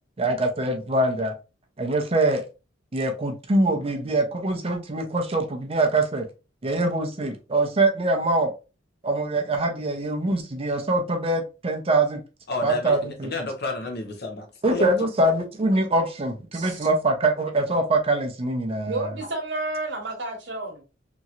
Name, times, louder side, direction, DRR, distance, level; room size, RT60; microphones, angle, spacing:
voice 1, 0.2-1.3 1.8-2.5 2.9-6.3 6.6-8.5 9.0-12.2 12.6-13.3 14.6-19.1, right 2 dB, 30° right, 0.5 m, -23 dB
voice 2, 12.5-15.1, left 2 dB, 55° left, 0.9 m, -31 dB
voice 3, 18.9-20.8, right 2 dB, 65° right, 1.1 m, -30 dB
3.0 x 2.7 x 2.4 m
head